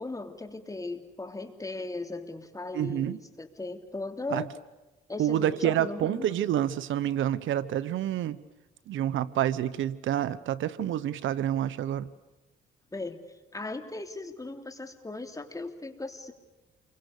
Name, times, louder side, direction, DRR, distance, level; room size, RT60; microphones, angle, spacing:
voice 1, 0.0-4.5 5.1-6.3 12.9-13.2 13.5-16.3, left 2 dB, 15° left, 6 dB, 3.3 m, -37 dB
voice 2, 2.7-3.2 4.3-4.4 5.2-8.4 8.9-12.1, right 11 dB, 75° right, 16 dB, 1.1 m, -28 dB
29.0 x 23.5 x 6.8 m, 1.1 s
cardioid pair, 90°, 20 cm